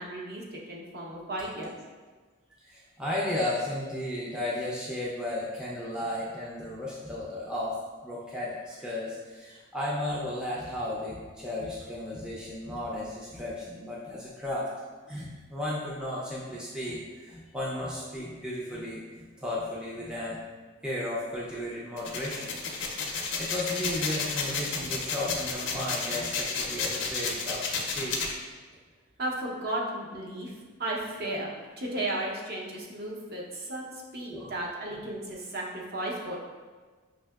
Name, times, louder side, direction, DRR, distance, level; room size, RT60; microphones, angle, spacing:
voice 1, 0.0-1.7 29.2-36.4, right 1 dB, 45° right, -3 dB, 0.6 m, -34 dB
voice 2, 2.6-7.8 8.0-14.7 15.1-20.4 20.8-22.6 23.4-28.2 34.3-34.5, left 1 dB, 5° right, -7 dB, 0.4 m, -34 dB
sound 1, 22.0-28.3, left 5 dB, 55° left, 0.5 m, -32 dB
5.4 x 2.7 x 2.3 m, 1.4 s
head